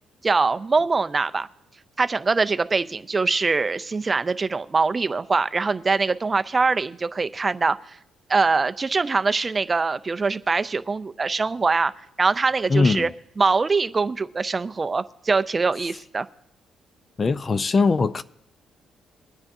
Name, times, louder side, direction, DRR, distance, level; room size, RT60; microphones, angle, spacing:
voice 1, 0.2-1.5 2.0-8.0 8.3-11.9 12.2-13.1 13.4-16.3, right 4 dB, 30° right, 0.5 m, -23 dB
voice 2, 12.7-13.1 17.2-18.2, left 4 dB, 35° left, 0.4 m, -20 dB
22.0 x 9.7 x 2.7 m
cardioid pair, 90°, 0 cm